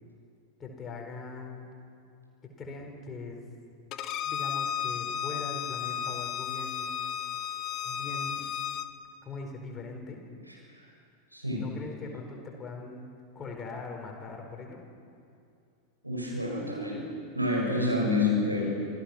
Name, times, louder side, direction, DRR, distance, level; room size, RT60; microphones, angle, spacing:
voice 1, 0.6-1.8 2.4-3.4 4.2-6.9 7.8-8.5 9.2-10.2 11.5-14.8, left 3 dB, 20° left, 1 dB, 4.4 m, -41 dB
Bowed string instrument, 3.9-8.9, left 9 dB, 35° left, 1.0 m, -33 dB
voice 2, 11.3-11.6 16.0-17.0 17.3-18.7, left 2 dB, 85° right, -3 dB, 6.5 m, -28 dB
26.5 x 16.5 x 6.3 m, 2.5 s
figure-of-eight pair, 90°, 0 cm